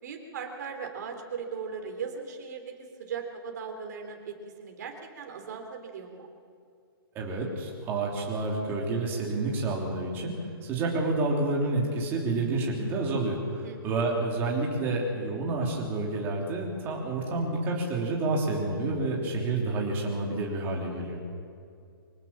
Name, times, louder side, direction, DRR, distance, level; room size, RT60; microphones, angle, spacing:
voice 1, 0.0-2.7 3.0-6.3 13.6-13.9, right 6 dB, 45° right, 4 dB, 3.5 m, -38 dB
voice 2, 7.1-10.3 10.6-21.2, right 2 dB, 15° right, -2 dB, 3.2 m, -29 dB
25.0 x 18.0 x 7.4 m, 2.4 s
hypercardioid pair, 170°, 13 cm